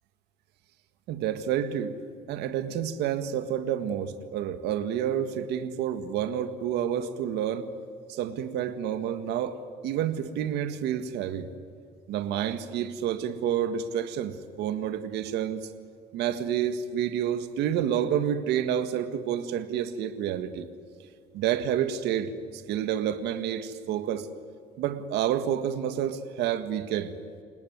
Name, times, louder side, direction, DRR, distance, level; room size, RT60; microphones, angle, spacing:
voice 1, 1.1-1.9 2.3-7.7 8.1-9.6 9.8-11.5 12.1-15.7 16.1-20.7 21.3-24.3 24.8-27.1, right 9 dB, 85° right, 11 dB, 1.8 m, -29 dB
29.5 x 19.0 x 9.5 m, 2.3 s
cardioid pair, 110°, 17 cm